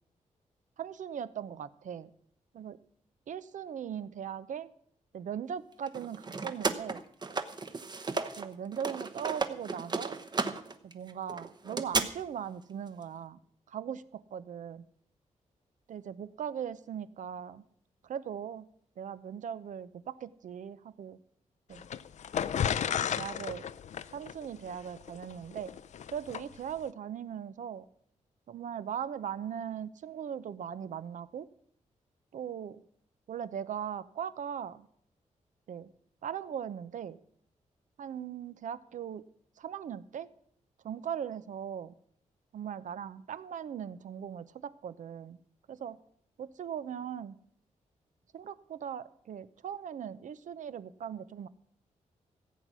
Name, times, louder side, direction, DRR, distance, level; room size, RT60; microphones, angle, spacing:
voice 1, 0.8-2.1 2.5-2.8 3.3-4.7 5.1-7.0 8.4-10.2 10.8-13.4 13.7-14.9 15.9-17.6 18.0-18.6 19.0-21.2 21.7-21.9 23.2-23.7 24.1-25.7 26.1-27.9 28.5-31.5 32.3-32.8 33.3-34.9 35.7-35.9 36.2-37.2 38.0-39.2 39.6-40.3 40.8-41.9 42.5-45.4 45.7-46.0 46.4-47.3 48.3-51.5, right 8 dB, 75° right, 15 dB, 0.7 m, -39 dB
sound 1, 5.9-8.5 8.7-12.0, right 4 dB, 35° right, 0.9 m, -34 dB
sound 2, 21.7-26.4, left 8 dB, 65° left, 0.5 m, -33 dB
15.0 x 8.3 x 6.1 m, 0.66 s
wide cardioid pair, 125°, 13 cm